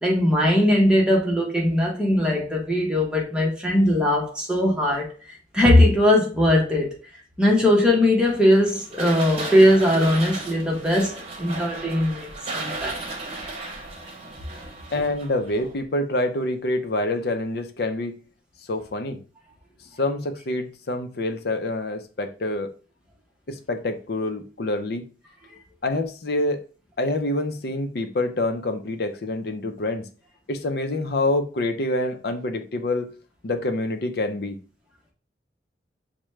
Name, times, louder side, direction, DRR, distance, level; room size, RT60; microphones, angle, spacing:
voice 1, 0.0-6.9 7.4-13.0, left 1 dB, 5° right, 0.9 m, -20 dB
sound 1, 8.2-15.8, right 2 dB, 35° right, 1.0 m, -35 dB
voice 2, 14.9-18.2 18.7-19.2 20.0-22.7 23.5-25.0 25.8-26.6 27.0-30.1 30.5-33.1 33.4-34.6, left 2 dB, 60° left, 0.6 m, -26 dB
5.9 x 2.2 x 3.1 m
head